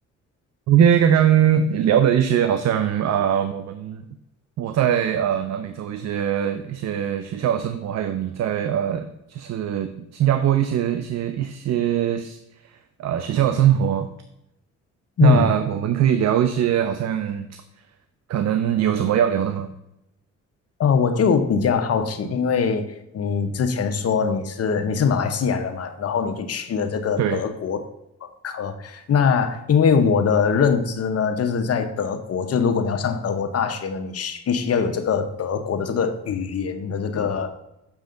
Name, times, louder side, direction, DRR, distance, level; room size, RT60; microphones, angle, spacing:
voice 1, 0.7-4.0 4.6-14.1 15.2-17.5 18.3-19.7 27.2-27.4, right 9 dB, 60° right, 10 dB, 0.6 m, -21 dB
voice 2, 20.8-22.8 23.1-27.8 28.2-37.5, left 6 dB, 50° left, 8 dB, 1.0 m, -22 dB
7.4 x 6.3 x 3.8 m, 0.87 s
cardioid pair, 90°, 30 cm